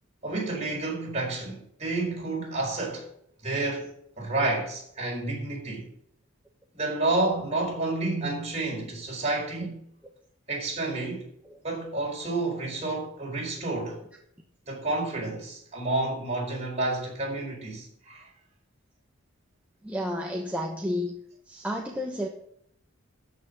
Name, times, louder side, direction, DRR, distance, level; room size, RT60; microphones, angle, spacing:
voice 1, 0.2-3.1 3.4-3.9 4.2-5.9 6.8-9.7 10.5-11.3 11.6-14.0 14.7-18.3, right 2 dB, 35° right, 5.0 m, -30 dB
voice 2, 19.8-21.1 21.5-22.3, equal, 5° right, 1.2 m, -31 dB
13.5 x 5.9 x 8.4 m
head